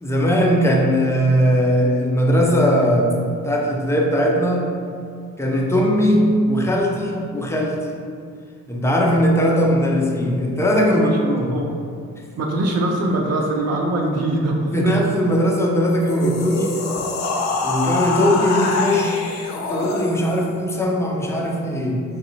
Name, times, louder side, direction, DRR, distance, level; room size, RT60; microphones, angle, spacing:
voice 1, 0.0-3.2 3.4-4.7 5.4-7.8 8.7-11.5 14.7-16.8 17.6-19.2 19.7-22.0, equal, 10° left, -1 dB, 0.5 m, -19 dB
voice 2, 10.9-11.9 12.4-14.8, right 1 dB, 60° right, 0 dB, 0.7 m, -23 dB
sound 1, 15.9-20.5, left 3 dB, 65° left, 0.6 m, -25 dB
3.7 x 2.0 x 3.9 m, 2.3 s
cardioid pair, 90°, 30 cm